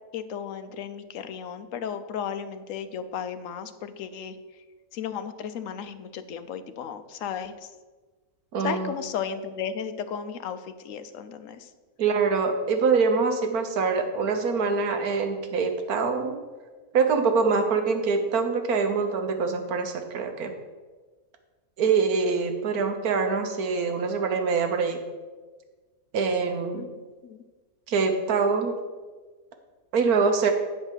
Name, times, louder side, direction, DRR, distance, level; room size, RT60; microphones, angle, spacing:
voice 1, 0.1-4.4 4.9-7.7 8.6-11.7 26.7-26.9 27.2-27.4, left 7 dB, 65° left, 9 dB, 1.0 m, -34 dB
voice 2, 8.5-8.9 12.0-16.4 16.9-20.5 21.8-25.0 26.1-26.9 27.9-28.8 29.9-30.5, right 5 dB, 80° right, 6 dB, 1.4 m, -24 dB
8.7 x 4.8 x 7.3 m, 1.3 s
omnidirectional pair, 1.6 m